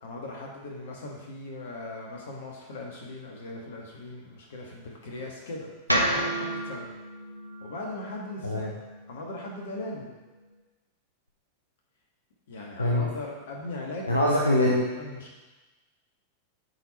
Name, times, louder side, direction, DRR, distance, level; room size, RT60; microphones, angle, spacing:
voice 1, 0.0-5.7 6.0-6.9 7.6-8.7 9.1-10.1 12.5-14.4 15.0-15.3, left 2 dB, 60° left, -1 dB, 1.6 m, -39 dB
sound 1, 5.9-10.1, right 1 dB, 90° right, 0.8 m, -31 dB
voice 2, 14.1-14.9, left 1 dB, 80° left, -2 dB, 0.8 m, -23 dB
7.8 x 4.7 x 4.2 m, 1.2 s
figure-of-eight pair, 90°, 0 cm